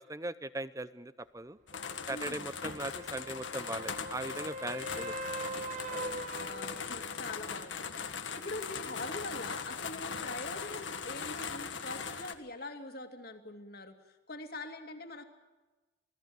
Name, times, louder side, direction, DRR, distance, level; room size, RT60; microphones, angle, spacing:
voice 1, 0.1-1.6 2.1-5.7 5.9-6.1, right 2 dB, 15° right, 15 dB, 0.7 m, -40 dB
sound 1, 1.7-12.3, left 6 dB, 75° left, 1.7 m, -40 dB
sound 2, 1.7-7.4 11.5-11.6, right 1 dB, 40° right, 1.2 m, -42 dB
voice 2, 2.1-2.5 6.3-15.2, left 2 dB, 50° left, 6 dB, 2.6 m, -44 dB
26.5 x 18.5 x 7.9 m, 1.2 s
head